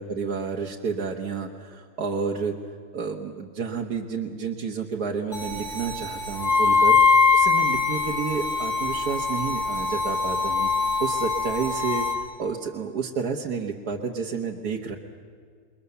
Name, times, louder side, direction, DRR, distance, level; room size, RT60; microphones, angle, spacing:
voice 1, 0.0-2.6 2.9-7.0 7.3-10.7 11.0-12.1 12.4-15.0, right 5 dB, 60° right, 0 dB, 1.8 m, -30 dB
sound 1, 5.3-12.1, right 2 dB, 60° left, 4.6 m, -35 dB
Wind instrument woodwind instrument, 6.4-12.3, left 5 dB, 25° left, 2.5 m, -22 dB
28.5 x 22.5 x 6.9 m, 2.1 s
omnidirectional pair, 1.9 m